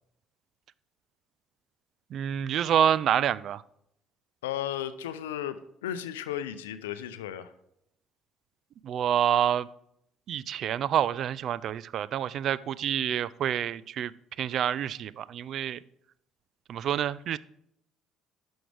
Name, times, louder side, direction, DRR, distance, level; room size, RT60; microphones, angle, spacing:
voice 1, 2.1-3.6 8.8-9.7 10.3-14.1 14.4-15.8 16.7-17.4, right 9 dB, 60° right, 20 dB, 0.3 m, -27 dB
voice 2, 4.4-7.5, left 10 dB, 85° left, 13 dB, 0.5 m, -35 dB
11.0 x 6.2 x 3.4 m, 0.75 s
hypercardioid pair, 60°, 0 cm